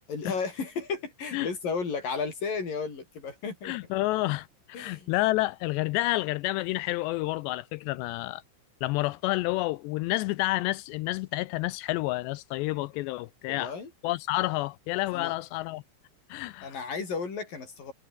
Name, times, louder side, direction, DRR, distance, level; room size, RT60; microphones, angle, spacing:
voice 1, 0.1-3.7 4.7-5.1 13.5-13.9 15.1-15.3 16.6-17.9, left 5 dB, 45° left, 7.9 m, -33 dB
voice 2, 3.6-8.4 8.8-13.7 14.0-15.8 16.3-16.8, left 19 dB, 85° left, 2.5 m, -29 dB
omnidirectional pair, 5.5 m